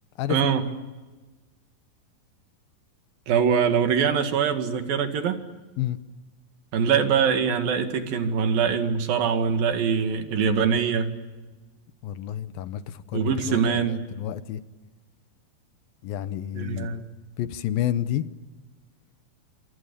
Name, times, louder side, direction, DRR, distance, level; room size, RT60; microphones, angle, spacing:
voice 1, 0.3-0.7 3.3-5.4 6.7-11.1 13.1-14.0 16.5-17.1, right 7 dB, 75° right, 7 dB, 3.7 m, -23 dB
voice 2, 12.0-13.6 13.9-14.6 16.0-17.0 17.4-18.3, left 12 dB, 80° left, 13 dB, 2.8 m, -29 dB
29.5 x 26.5 x 6.9 m, 1.2 s
omnidirectional pair, 4.1 m